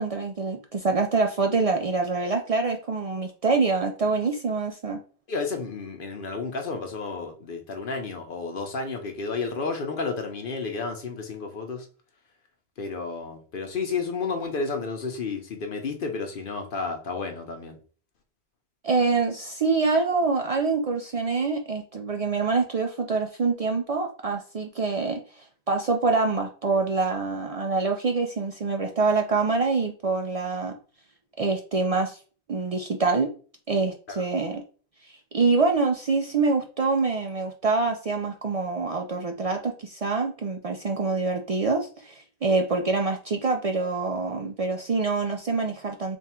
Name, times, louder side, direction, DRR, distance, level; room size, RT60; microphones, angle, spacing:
voice 1, 0.0-5.0 18.8-30.8 31.4-32.2 32.5-33.3 33.7-34.6 35.3-46.2, right 4 dB, 55° right, 0.4 m, -25 dB
voice 2, 5.3-11.9 12.8-17.8 34.1-34.2, left 4 dB, 60° left, 0.8 m, -31 dB
3.5 x 2.4 x 4.2 m
omnidirectional pair, 1.1 m